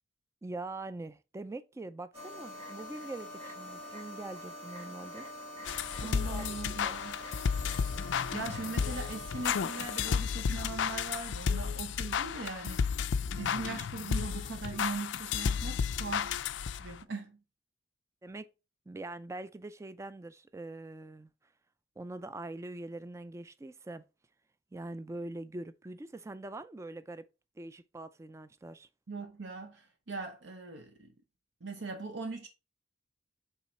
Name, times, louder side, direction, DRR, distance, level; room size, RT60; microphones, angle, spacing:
voice 1, 0.4-5.3 6.0-6.9 18.2-18.5 18.9-21.3 22.0-24.0 24.7-27.3 27.6-28.9, right 2 dB, 15° right, 0.3 m, -43 dB
sound 1, 2.1-10.0, left 1 dB, 30° right, 1.9 m, -45 dB
sound 2, 5.7-17.0, left 6 dB, 70° left, 0.4 m, -33 dB
voice 2, 6.0-7.2 8.3-12.9 13.4-16.4 16.8-17.4 29.1-31.1 31.6-32.5, right 3 dB, 70° right, 0.8 m, -40 dB
5.6 x 4.0 x 4.2 m
head